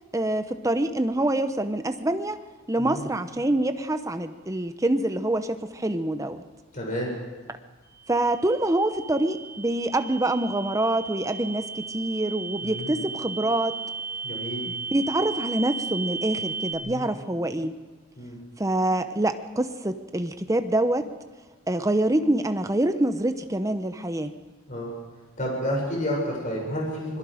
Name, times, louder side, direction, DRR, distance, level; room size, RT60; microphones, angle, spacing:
voice 1, 0.1-2.4 2.7-6.4 8.1-13.7 14.9-17.7 18.6-21.1 21.7-24.3, right 1 dB, 15° right, 9 dB, 0.9 m, -25 dB
voice 2, 6.7-7.1 12.6-12.9 14.2-14.6 16.8-17.1 18.2-18.4 24.7-24.9 25.4-27.2, equal, 40° left, -2 dB, 6.8 m, -30 dB
sound 1, 7.9-16.7, right 5 dB, 55° left, 1.8 m, -35 dB
25.5 x 21.5 x 5.1 m, 1.3 s
head